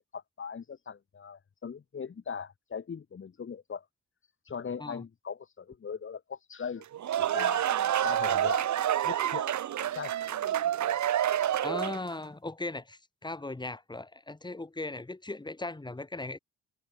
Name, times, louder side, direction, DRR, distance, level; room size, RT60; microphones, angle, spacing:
voice 1, 0.0-3.8 4.5-6.8 7.2-7.6 8.0-8.6 9.0-9.5 9.8-10.2, left 6 dB, 40° left, 3.8 m, -39 dB
sound 1, 6.8-12.1, right 11 dB, 70° right, 3.7 m, -28 dB
voice 2, 11.6-16.4, left 2 dB, 15° left, 4.8 m, -38 dB
cardioid pair, 90°, 30 cm